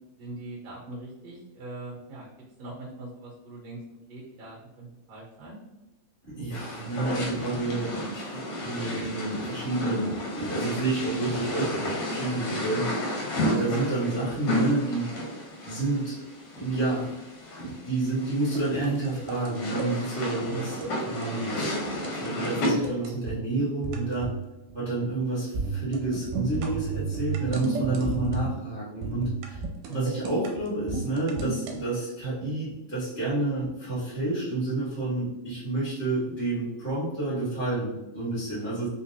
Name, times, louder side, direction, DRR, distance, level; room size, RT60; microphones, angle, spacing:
voice 1, 0.2-2.3 2.6-3.8 4.1-5.6 20.5-20.9 29.9-30.2, right 3 dB, 65° right, -4 dB, 1.7 m, -40 dB
voice 2, 6.3-15.1 15.6-16.1 16.5-17.1 17.6-21.9 22.2-24.3 24.7-29.6 29.9-38.9, right 2 dB, 45° right, -10 dB, 0.6 m, -29 dB
sound 1, 6.5-22.7, left 1 dB, 80° left, 1.4 m, -32 dB
sound 2, 18.5-19.9 20.6-20.9 21.2-21.4 21.6-21.7 22.0-23.4 23.8-24.4 24.7-25.0 25.5-28.6 29.0-31.8, right 4 dB, 85° right, 2.1 m, -33 dB
5.1 x 2.0 x 2.7 m, 1.0 s
omnidirectional pair, 3.7 m